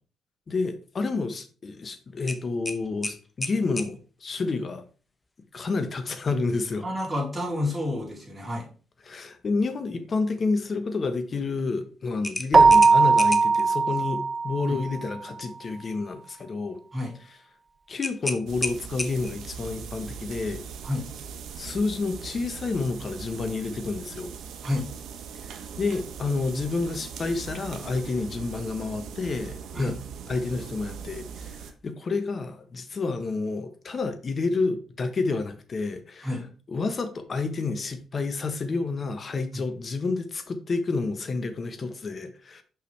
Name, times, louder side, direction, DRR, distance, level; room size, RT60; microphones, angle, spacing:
voice 1, 0.5-4.8 5.5-6.9 9.0-16.8 17.9-20.6 21.6-24.3 25.4-29.9 30.3-36.3 36.7-42.6, left 3 dB, 40° left, 1.1 m, -29 dB
sound 1, 2.3-3.9 6.6-6.8 7.2-7.3 12.2-13.6 18.0-19.5, left 2 dB, 15° left, 0.8 m, -33 dB
voice 2, 6.8-8.7 14.7-14.8 16.9-17.1 20.8-21.1 24.6-24.9 29.7-29.9 36.2-36.4 39.5-39.6, left 1 dB, 15° right, 3.0 m, -29 dB
Keyboard (musical), 12.5-15.0, right 4 dB, 30° right, 0.3 m, -19 dB
sound 2, 18.5-31.7, right 7 dB, 75° right, 0.9 m, -40 dB
5.9 x 5.7 x 3.3 m
cardioid pair, 90°, 0 cm